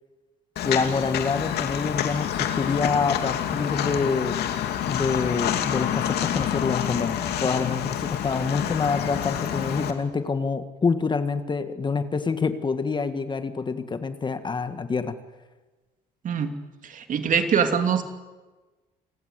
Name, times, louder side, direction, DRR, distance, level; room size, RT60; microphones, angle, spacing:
Walk footsteps, 0.6-9.9, left 10 dB, 75° left, 2.7 m, -28 dB
voice 1, 0.6-4.4 4.9-15.1, left 4 dB, 25° left, 10 dB, 1.7 m, -26 dB
voice 2, 16.2-16.6 16.8-18.0, right 7 dB, 50° right, 7 dB, 2.9 m, -23 dB
29.5 x 19.5 x 8.2 m, 1.2 s
cardioid pair, 110°, 17 cm